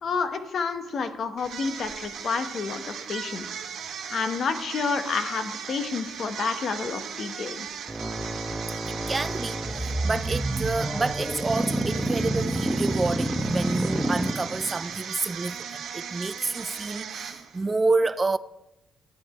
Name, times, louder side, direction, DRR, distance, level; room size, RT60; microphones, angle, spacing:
voice 1, 0.0-3.6 4.1-7.7, left 5 dB, 55° left, 1.1 m, -29 dB
sound 1, 1.4-17.7, right 7 dB, 70° right, 1.3 m, -37 dB
sound 2, 7.9-14.8, right 1 dB, 5° right, 1.1 m, -28 dB
voice 2, 8.9-18.4, right 3 dB, 25° right, 0.3 m, -29 dB
12.0 x 9.6 x 4.4 m
cardioid pair, 90°, 0 cm